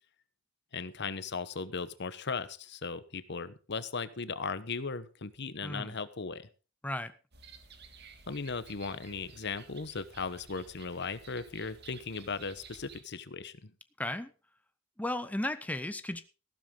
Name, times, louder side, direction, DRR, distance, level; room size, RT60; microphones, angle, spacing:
voice 1, 0.7-6.5 8.3-13.7, left 4 dB, 55° left, 14 dB, 1.0 m, -37 dB
voice 2, 5.6-5.9 6.8-7.1 14.0-14.3 15.0-16.2, left 1 dB, 5° left, 11 dB, 0.7 m, -34 dB
sound 1, 7.3-13.0, right 4 dB, 50° right, 2.0 m, -54 dB
15.0 x 12.5 x 3.8 m, 0.33 s
head